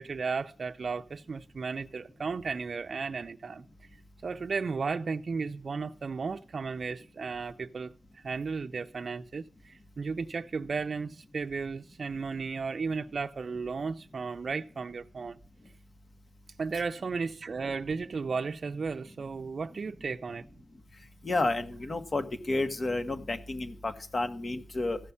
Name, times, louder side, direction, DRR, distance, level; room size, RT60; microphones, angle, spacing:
voice 1, 0.0-3.7 4.2-15.4 16.6-20.5, right 4 dB, 60° right, 0.5 m, -34 dB
voice 2, 21.2-25.0, left 2 dB, 45° left, 1.5 m, -31 dB
15.0 x 5.5 x 8.5 m
wide cardioid pair, 95°, 0 cm